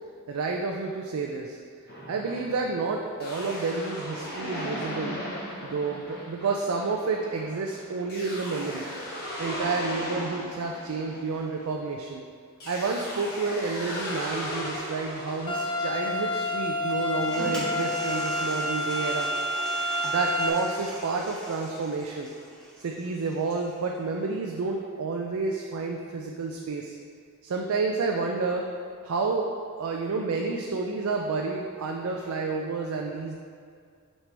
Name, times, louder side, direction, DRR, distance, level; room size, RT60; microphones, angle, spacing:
voice 1, 0.3-1.6 2.1-5.2 5.6-8.9 9.4-12.2 12.6-19.3 20.0-22.3 22.8-26.9 27.4-28.6 29.0-29.5 29.8-33.3, right 4 dB, 65° right, 1 dB, 0.4 m, -30 dB
sound 1, 1.9-12.0 12.6-16.3, equal, 45° left, 1.3 m, -37 dB
sound 2, 15.5-20.5, left 1 dB, 20° left, 0.5 m, -29 dB
Toilet flush, 16.9-23.8, equal, 5° left, 0.9 m, -40 dB
5.9 x 5.4 x 3.3 m, 2.1 s
head